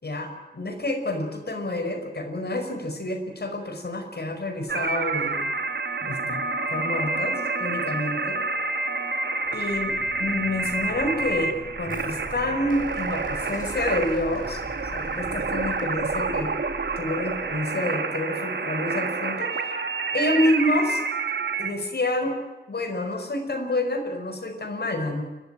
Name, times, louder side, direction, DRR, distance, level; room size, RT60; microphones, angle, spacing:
voice 1, 0.0-5.5 6.0-6.4 6.7-8.4 9.5-14.6 14.9-16.5 17.0-19.7 20.1-21.0 21.6-22.4 22.7-25.2, left 1 dB, 65° left, 4 dB, 5.3 m, -28 dB
sound 1, 4.7-21.7, right 3 dB, 80° right, 1.9 m, -28 dB
sound 2, 9.4-17.9, left 1 dB, 50° left, 6.4 m, -42 dB
29.5 x 14.0 x 9.2 m, 1.1 s
wide cardioid pair, 95°, 18 cm